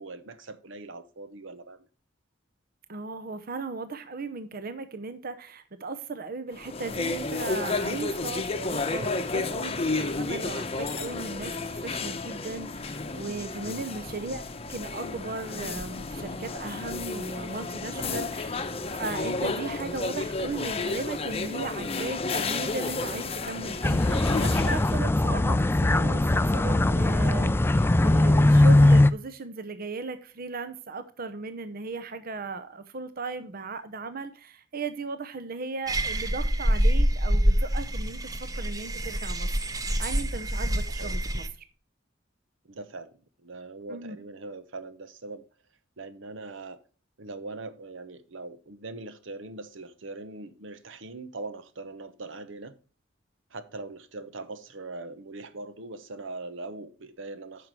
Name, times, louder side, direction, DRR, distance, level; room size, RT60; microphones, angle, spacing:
voice 1, 0.0-1.9 13.6-13.9 17.9-18.3 41.0-41.2 42.6-43.1 43.4-45.4 46.0-46.8 47.2-52.7 53.5-57.7, right 3 dB, 80° right, 0.9 m, -41 dB
voice 2, 2.9-14.4 14.7-18.5 18.9-38.2 38.5-39.5 40.0-41.4 43.9-44.2, right 3 dB, 50° right, 0.8 m, -37 dB
sound 1, 6.5-25.0, left 3 dB, 30° left, 0.8 m, -32 dB
sound 2, 23.8-29.1, left 1 dB, 10° left, 0.3 m, -20 dB
sound 3, 35.9-41.5, equal, 20° right, 0.9 m, -26 dB
9.3 x 6.0 x 4.7 m
head